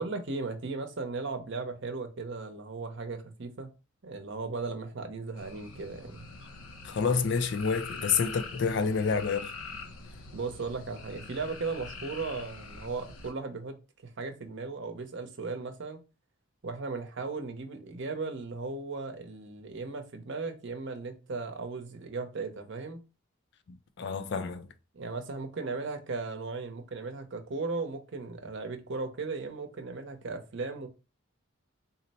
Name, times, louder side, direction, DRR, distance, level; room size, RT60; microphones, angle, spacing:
voice 1, 0.0-3.7 4.0-6.3 10.3-13.8 14.0-16.0 16.6-23.0 24.9-30.9, right 3 dB, 60° right, 0.7 m, -36 dB
sound 1, 5.3-13.3, left 4 dB, 85° left, 0.7 m, -44 dB
voice 2, 6.8-9.5 24.0-24.7, left 5 dB, 55° left, 0.4 m, -28 dB
4.0 x 2.0 x 4.0 m
head